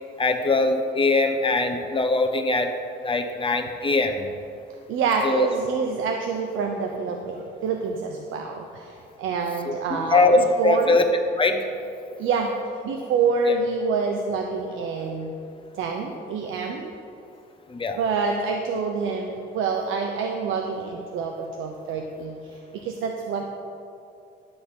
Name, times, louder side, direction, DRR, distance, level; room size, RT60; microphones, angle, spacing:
voice 1, 0.2-2.7 3.0-4.3 5.2-5.5 9.7-10.4 10.6-11.0 11.4-11.6 17.7-18.0, left 3 dB, 25° left, 4 dB, 1.1 m, -21 dB
voice 2, 4.9-11.0 12.2-12.5 12.8-15.3 15.7-16.9 18.0-23.5, right 5 dB, 85° right, 2 dB, 0.8 m, -27 dB
11.5 x 6.4 x 5.5 m, 2.6 s
cardioid pair, 90°, 20 cm